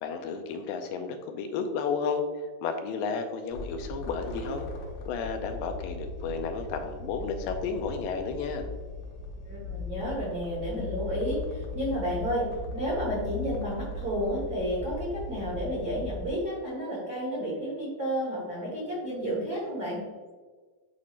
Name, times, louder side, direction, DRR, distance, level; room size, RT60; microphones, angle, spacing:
voice 1, 0.0-2.2 2.6-4.7 5.1-8.7, left 5 dB, 85° left, 6 dB, 2.3 m, -32 dB
sound 1, 3.5-16.3, left 3 dB, 65° left, 1.9 m, -38 dB
voice 2, 9.4-12.5 12.7-20.0, equal, 70° right, -6 dB, 0.9 m, -31 dB
9.9 x 4.2 x 2.5 m, 1.4 s
omnidirectional pair, 4.0 m